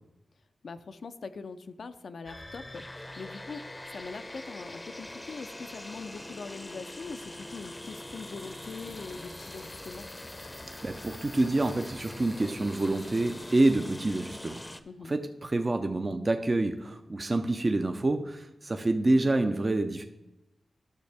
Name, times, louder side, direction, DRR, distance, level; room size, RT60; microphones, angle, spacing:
voice 1, 0.6-3.6 3.9-10.1 14.9-15.1, left 4 dB, 75° left, 10 dB, 0.4 m, -42 dB
sound 1, 2.3-14.8, left 1 dB, 25° left, 0.6 m, -43 dB
voice 2, 10.8-14.6 15.1-20.1, right 2 dB, 40° right, 6 dB, 0.5 m, -27 dB
10.5 x 6.4 x 3.4 m, 0.96 s
cardioid pair, 50°, 0 cm